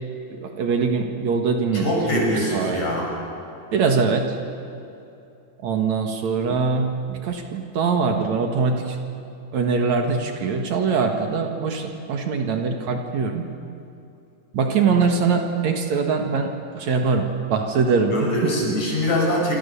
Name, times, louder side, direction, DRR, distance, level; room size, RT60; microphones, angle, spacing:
voice 1, 0.4-1.9 2.1-2.8 3.7-4.3 5.6-8.8 9.5-13.4 14.5-16.5 16.7-17.2 17.5-18.3, right 5 dB, 60° right, 4 dB, 2.9 m, -22 dB
voice 2, 1.7-3.1 18.1-19.6, left 1 dB, 55° left, -2 dB, 7.8 m, -23 dB
27.0 x 26.5 x 7.0 m, 2.7 s
omnidirectional pair, 3.7 m